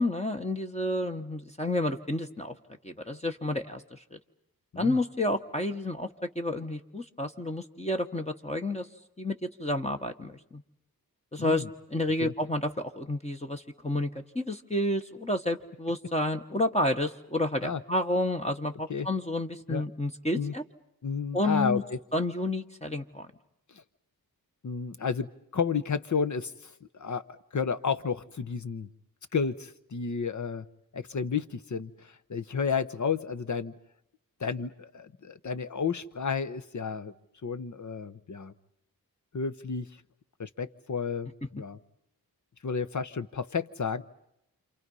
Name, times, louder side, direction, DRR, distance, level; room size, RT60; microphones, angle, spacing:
voice 1, 0.0-2.5 2.8-4.2 4.8-8.9 9.2-10.6 11.3-11.6 11.9-14.1 14.3-20.6 21.3-21.8 22.1-23.3, left 1 dB, 15° left, 4 dB, 1.2 m, -30 dB
voice 2, 11.4-11.7 12.2-12.3 17.6-17.8 18.9-19.1 19.7-19.8 20.3-20.5 21.0-22.0 23.7-23.8 24.6-28.9 29.3-30.6 30.9-33.7 34.4-37.1 37.4-38.5 39.3-39.9 40.4-41.8 42.6-44.0, left 5 dB, 50° left, 12 dB, 1.0 m, -32 dB
29.0 x 27.5 x 5.5 m, 0.80 s
wide cardioid pair, 75°, 37 cm